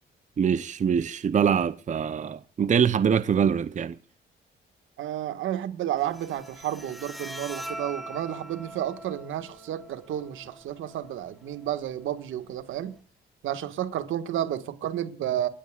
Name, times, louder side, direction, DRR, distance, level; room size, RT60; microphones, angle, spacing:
voice 1, 0.4-3.9, right 7 dB, 40° right, 0.7 m, -24 dB
voice 2, 5.0-13.0 13.4-15.5, right 11 dB, 80° right, 1.7 m, -31 dB
Bowed string instrument, 6.0-13.0, right 1 dB, ahead, 2.3 m, -43 dB
29.0 x 12.5 x 2.4 m
cardioid pair, 90°, 20 cm